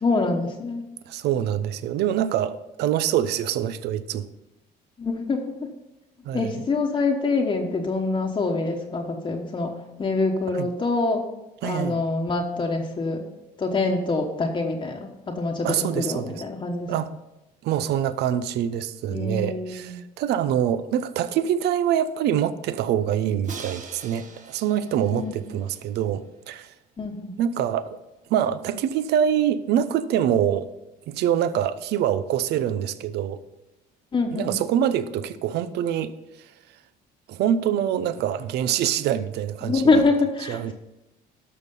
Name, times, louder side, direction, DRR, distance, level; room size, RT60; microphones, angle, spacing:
voice 1, 0.0-0.9 5.0-5.7 6.3-11.3 11.6-13.2 13.6-16.9 19.1-20.0 25.1-25.3 27.0-27.3 34.1-34.5 39.6-40.7, left 3 dB, 30° left, 1.1 m, -25 dB
voice 2, 1.1-4.3 6.2-6.5 10.5-10.7 11.6-12.0 15.6-16.3 16.9-17.1 17.6-26.7 27.4-28.0 28.3-30.7 31.1-33.4 34.3-36.1 37.3-39.9 40.5-40.7, right 10 dB, 75° right, 0.7 m, -25 dB
Crash cymbal, 23.4-26.4, right 4 dB, 45° right, 1.3 m, -42 dB
12.0 x 6.5 x 5.4 m
cardioid pair, 110°, 17 cm